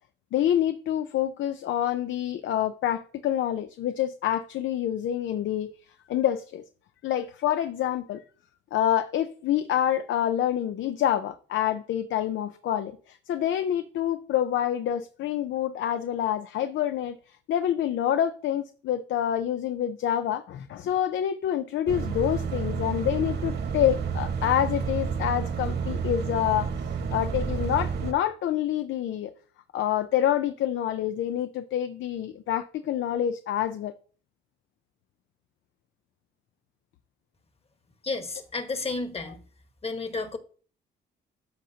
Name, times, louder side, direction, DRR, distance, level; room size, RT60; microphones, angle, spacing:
voice 1, 0.3-5.7 6.1-6.6 7.0-8.2 8.7-17.2 17.5-26.7 27.1-29.3 29.7-33.9, left 11 dB, 75° left, 0.7 m, -27 dB
sound 1, 21.9-28.1, right 6 dB, 60° right, 1.5 m, -30 dB
voice 2, 38.0-39.4 39.8-40.4, left 3 dB, 30° left, 1.4 m, -31 dB
13.0 x 5.1 x 2.8 m
cardioid pair, 90°, 20 cm